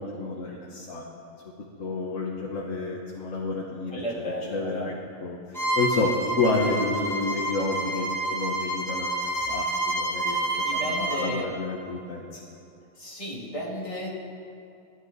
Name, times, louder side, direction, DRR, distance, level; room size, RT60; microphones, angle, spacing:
voice 1, 0.2-1.0 1.8-4.0 4.5-4.9 5.2-5.4 5.7-12.3, left 3 dB, 70° left, -2 dB, 1.5 m, -29 dB
voice 2, 3.9-4.9 10.3-11.5 13.0-14.2, equal, 25° left, -5 dB, 2.2 m, -34 dB
Bowed string instrument, 5.5-11.3, right 1 dB, ahead, 1.4 m, -29 dB
18.0 x 11.0 x 4.0 m, 2.6 s
omnidirectional pair, 1.4 m